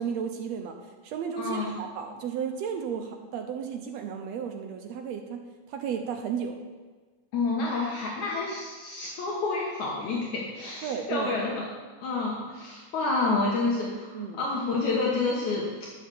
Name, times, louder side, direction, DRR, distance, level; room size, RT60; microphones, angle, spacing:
voice 1, 0.0-5.4 5.7-6.6 10.8-11.4 14.1-14.4, right 7 dB, 75° right, 4 dB, 1.7 m, -33 dB
voice 2, 1.4-1.7 7.3-11.7 12.0-15.7, left 3 dB, 70° left, -3 dB, 2.7 m, -29 dB
11.0 x 6.5 x 7.0 m, 1.4 s
omnidirectional pair, 3.6 m